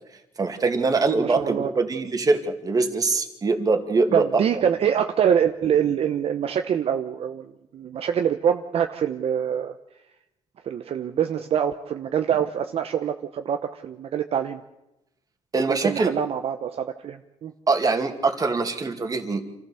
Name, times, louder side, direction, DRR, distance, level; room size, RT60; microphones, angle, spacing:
voice 1, 0.4-4.3 15.5-16.1 17.7-19.4, right 3 dB, 30° right, 6 dB, 2.4 m, -23 dB
voice 2, 1.2-1.7 4.1-9.7 10.6-14.6 15.7-17.5, right 8 dB, 60° right, 6 dB, 0.9 m, -25 dB
27.5 x 14.5 x 7.0 m, 0.94 s
cardioid pair, 110°, 12 cm